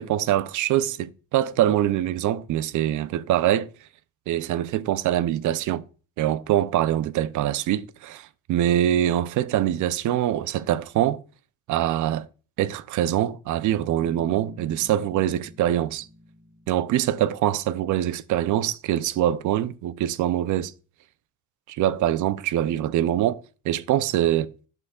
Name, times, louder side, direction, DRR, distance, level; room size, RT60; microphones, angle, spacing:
voice 1, 0.0-3.7 4.3-5.8 6.2-11.2 11.7-12.3 12.6-16.1 16.7-20.7 21.7-24.5, right 12 dB, 75° right, 0.5 m, -24 dB
Bass guitar, 14.0-17.8, equal, 60° right, 1.8 m, -48 dB
11.5 x 5.5 x 2.3 m
cardioid pair, 90°, 30 cm